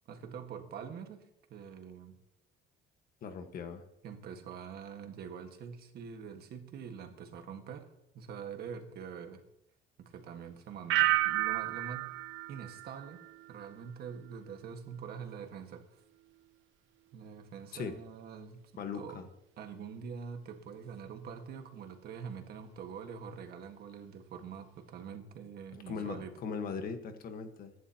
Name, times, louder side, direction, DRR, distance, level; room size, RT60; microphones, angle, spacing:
voice 1, 0.1-2.2 4.0-9.4 10.0-12.2 12.5-13.2 13.5-16.0 17.1-19.2 19.6-26.3, right 7 dB, 55° right, 5 dB, 1.7 m, -45 dB
voice 2, 3.2-3.8 17.7-18.0 18.7-19.3 25.7-27.7, left 5 dB, 50° left, 7 dB, 1.4 m, -39 dB
sound 1, 10.9-13.7 14.1-14.5, right 18 dB, 80° right, 0.5 m, -32 dB
23.5 x 11.0 x 2.9 m, 0.84 s
cardioid pair, 180°, 20 cm